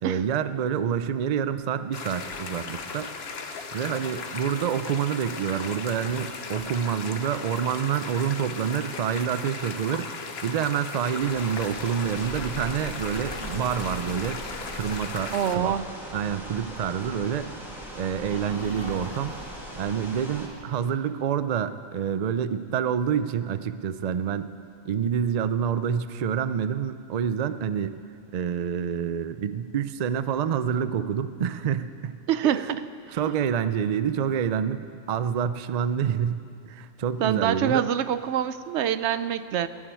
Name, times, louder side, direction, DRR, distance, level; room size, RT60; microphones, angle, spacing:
voice 1, 0.0-3.1 3.7-14.5 14.7-15.8 16.1-17.5 18.0-19.4 19.8-24.5 24.8-28.0 28.3-32.2 32.4-32.8 33.1-37.9, right 8 dB, 85° right, 12 dB, 0.3 m, -27 dB
sound 1, 1.9-15.6, left 5 dB, 55° left, 1.1 m, -37 dB
sound 2, 11.2-20.5, equal, ahead, 2.1 m, -40 dB
sound 3, 13.1-20.6, right 1 dB, 20° right, 1.2 m, -44 dB
voice 2, 15.3-15.9 32.3-32.8 37.2-39.7, right 9 dB, 65° right, 13 dB, 0.8 m, -25 dB
17.0 x 7.3 x 9.2 m, 2.3 s
omnidirectional pair, 1.4 m